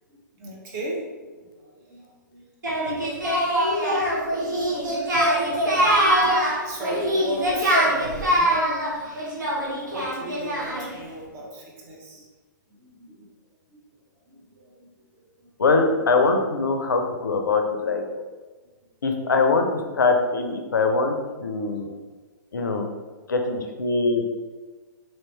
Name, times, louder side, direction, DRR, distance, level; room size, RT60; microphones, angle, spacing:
voice 1, 0.1-2.5 2.8-5.2 5.5-8.6 9.0-9.5 9.9-12.2 12.8-13.3 13.7-13.8 14.3-16.1 19.4-19.5 21.8-22.0 22.7-23.0, right 1 dB, 30° right, -3 dB, 0.8 m, -39 dB
Singing, 2.6-11.0, equal, 70° right, 1.0 m, -23 dB
voice 2, 15.6-18.0 19.0-19.7 19.9-21.9 22.5-22.9 23.3-24.2, left 3 dB, 75° left, 4 dB, 0.5 m, -22 dB
3.1 x 2.8 x 3.1 m, 1.3 s
figure-of-eight pair, 115°, 11 cm